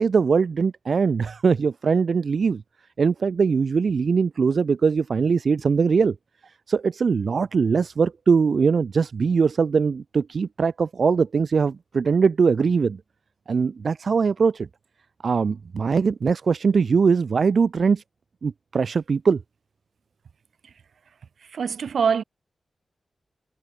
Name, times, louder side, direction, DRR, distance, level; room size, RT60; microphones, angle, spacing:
voice 1, 0.0-2.6 3.0-6.1 6.7-13.0 13.5-14.7 15.2-18.0 18.4-19.4, right 5 dB, 70° right, 4.6 m, -21 dB
voice 2, 21.5-22.2, right 6 dB, 85° right, 7.0 m, -23 dB
cardioid pair, 60°, 0 cm